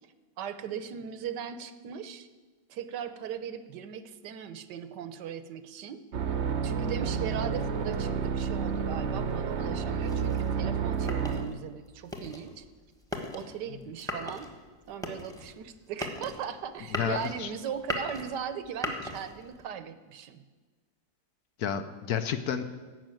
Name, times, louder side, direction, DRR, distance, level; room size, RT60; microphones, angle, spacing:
voice 1, 0.4-2.3 2.7-6.3 6.6-12.6 13.3-14.5 14.9-20.4, right 8 dB, 75° right, 12 dB, 1.3 m, -39 dB
sound 1, 6.1-11.6, right 6 dB, 50° right, 0.9 m, -30 dB
sound 2, 10.0-19.7, left 1 dB, ahead, 1.1 m, -39 dB
voice 2, 16.9-17.5 21.6-22.6, left 8 dB, 65° left, 10 dB, 1.1 m, -31 dB
15.0 x 6.0 x 9.0 m, 1.4 s
omnidirectional pair, 1.9 m